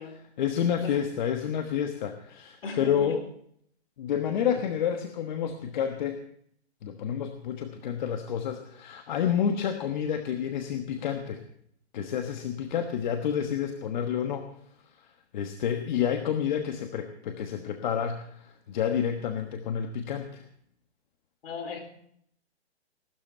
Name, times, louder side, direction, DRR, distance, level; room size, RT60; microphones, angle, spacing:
voice 1, 0.4-3.2 4.0-6.2 6.8-11.4 11.9-14.5 15.3-20.4, left 8 dB, 45° left, 6 dB, 1.3 m, -29 dB
voice 2, 2.6-3.2 21.4-21.9, left 4 dB, 60° left, 7 dB, 4.0 m, -37 dB
17.5 x 12.5 x 4.4 m, 0.67 s
hypercardioid pair, 145°, 33 cm